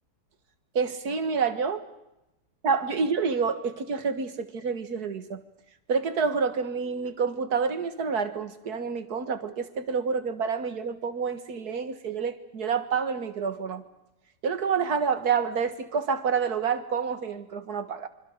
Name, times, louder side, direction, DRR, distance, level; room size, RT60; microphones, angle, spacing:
voice 1, 0.8-1.8 2.6-5.4 5.9-13.8 14.4-18.1, right 5 dB, 65° right, 10 dB, 2.2 m, -28 dB
26.0 x 25.5 x 6.7 m, 0.90 s
omnidirectional pair, 1.8 m